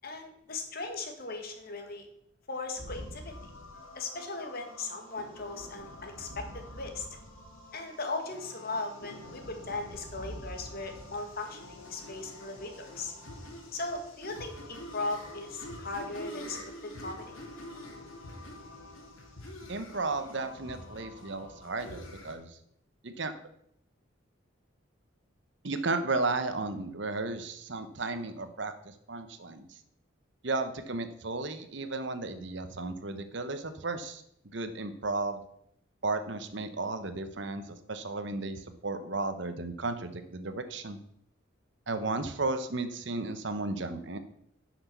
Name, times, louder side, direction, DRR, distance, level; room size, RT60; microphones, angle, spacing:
voice 1, 0.0-2.1 2.5-3.3 3.9-7.1 7.7-13.1 13.7-17.3, left 3 dB, 45° left, 4 dB, 1.6 m, -38 dB
sound 1, 2.8-22.4, left 1 dB, 85° left, 2.8 m, -46 dB
voice 2, 19.7-22.6 23.0-23.3 25.6-29.8 30.4-34.2 34.5-35.4 36.0-41.0 41.9-44.2, right 3 dB, 60° right, 9 dB, 0.9 m, -34 dB
10.5 x 6.0 x 6.7 m, 0.73 s
head